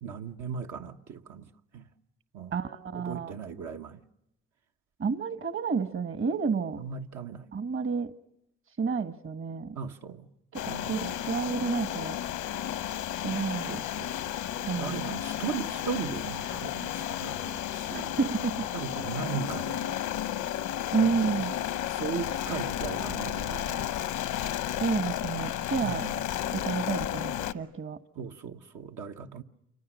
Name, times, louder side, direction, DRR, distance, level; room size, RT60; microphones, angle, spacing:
voice 1, 0.0-1.4 1.7-1.8 2.3-2.5 2.9-4.0 6.8-7.4 9.7-10.3 10.7-10.9 13.7-14.1 14.6-18.2 18.7-19.9 21.0-21.3 21.9-23.9 25.8-26.2 28.2-29.4, right 7 dB, 75° right, 1.2 m, -37 dB
voice 2, 2.5-3.3 5.0-6.8 7.5-8.1 8.8-9.8 10.5-10.6 10.9-12.2 13.2-13.8 14.6-15.2 18.2-18.7 19.5-19.6 20.9-21.5 24.8-26.1 26.5-28.0, right 5 dB, 45° right, 1.3 m, -30 dB
sound 1, 10.5-27.5, left 11 dB, 85° left, 1.0 m, -33 dB
28.5 x 26.0 x 6.2 m
cardioid pair, 90°, 30 cm